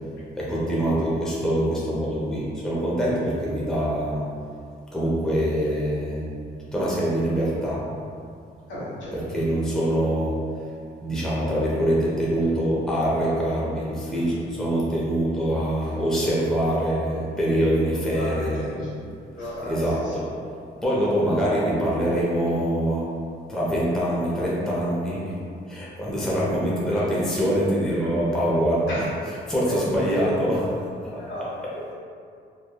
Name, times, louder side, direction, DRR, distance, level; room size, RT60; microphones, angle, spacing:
voice 1, 0.4-4.3 4.9-6.2 6.7-7.9 9.1-10.7 11.0-18.9 19.6-20.4 20.8-23.2 23.5-25.4 25.7-31.2 31.6-31.7, equal, 5° left, -7 dB, 0.6 m, -24 dB
voice 2, 8.7-9.4 17.8-18.6 18.9-19.0 19.3-20.2 26.4-26.6 28.9-29.1 29.7-30.2 31.2-31.9, equal, 70° left, -9 dB, 1.3 m, -35 dB
2.9 x 2.2 x 2.3 m, 2.4 s
cardioid pair, 90°, 20 cm